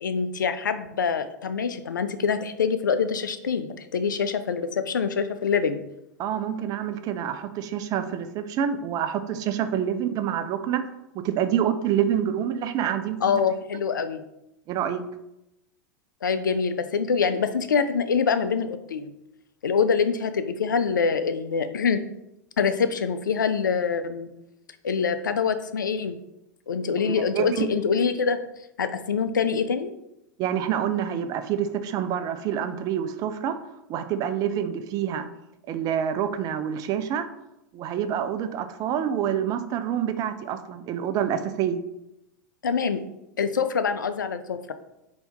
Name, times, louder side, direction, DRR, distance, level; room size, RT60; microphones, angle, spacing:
voice 1, 0.0-5.8 13.2-14.2 16.2-19.1 19.6-22.0 22.6-24.3 24.8-26.2 26.7-28.4 28.8-29.9 42.6-43.0 43.4-44.7, left 6 dB, 85° left, 10 dB, 0.4 m, -25 dB
voice 2, 6.2-10.9 11.2-13.4 14.7-15.0 27.1-27.7 30.4-33.6 33.9-35.3 35.7-37.3 37.7-41.8, right 9 dB, 40° right, 9 dB, 0.4 m, -27 dB
3.4 x 2.7 x 4.4 m, 0.87 s
hypercardioid pair, 95°, 10 cm